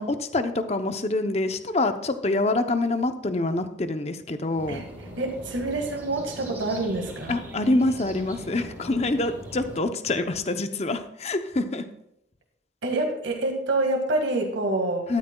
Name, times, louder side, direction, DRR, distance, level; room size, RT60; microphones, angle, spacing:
voice 1, 0.0-4.8 7.3-11.8 15.1-15.2, left 2 dB, 35° left, 8 dB, 0.7 m, -26 dB
sound 1, 4.6-9.8, equal, 10° right, 4.2 m, -41 dB
voice 2, 5.2-7.4 12.8-15.1, right 2 dB, 85° right, 2 dB, 1.8 m, -27 dB
13.0 x 12.5 x 2.3 m, 0.79 s
head